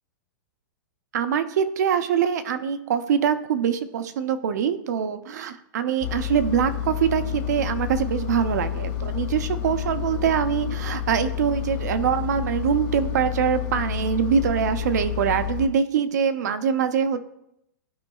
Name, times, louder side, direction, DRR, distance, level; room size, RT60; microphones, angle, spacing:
voice 1, 1.1-17.2, right 8 dB, 55° right, 10 dB, 0.6 m, -24 dB
Engine, 6.0-15.7, left 10 dB, 25° left, 0.5 m, -29 dB
12.5 x 5.2 x 2.3 m, 0.79 s
hypercardioid pair, 170°, 11 cm